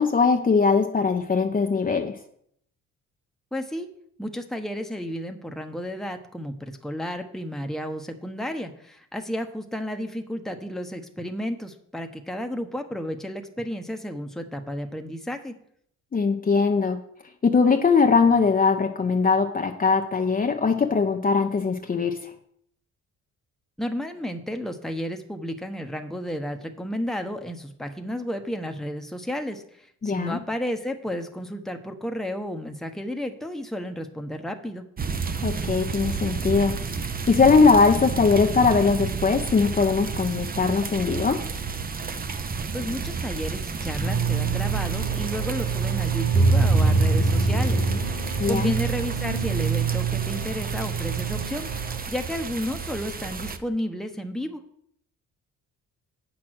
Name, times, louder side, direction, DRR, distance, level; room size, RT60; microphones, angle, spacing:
voice 1, 0.0-2.1 16.1-17.0 17.4-22.3 30.0-30.4 35.4-36.8 37.3-41.4 48.4-48.7, left 5 dB, 30° left, 4 dB, 0.8 m, -21 dB
voice 2, 3.5-3.9 4.2-15.5 23.8-34.8 42.7-48.2 48.5-54.6, equal, ahead, 4 dB, 1.0 m, -32 dB
sound 1, 35.0-53.6, right 5 dB, 30° right, 0.8 m, -32 dB
sound 2, 44.0-52.0, right 4 dB, 55° right, 4.1 m, -24 dB
8.4 x 6.1 x 6.4 m, 0.69 s
cardioid pair, 90°, 30 cm